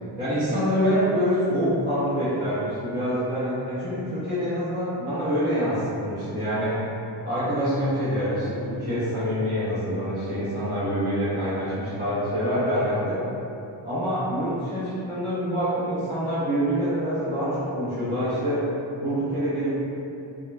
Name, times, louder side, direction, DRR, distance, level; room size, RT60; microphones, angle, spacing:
voice 1, 0.2-6.7 7.2-13.2 13.8-18.6 19.0-19.7, equal, 20° right, -17 dB, 1.1 m, -26 dB
3.7 x 2.9 x 2.2 m, 2.8 s
wide cardioid pair, 115°, 48 cm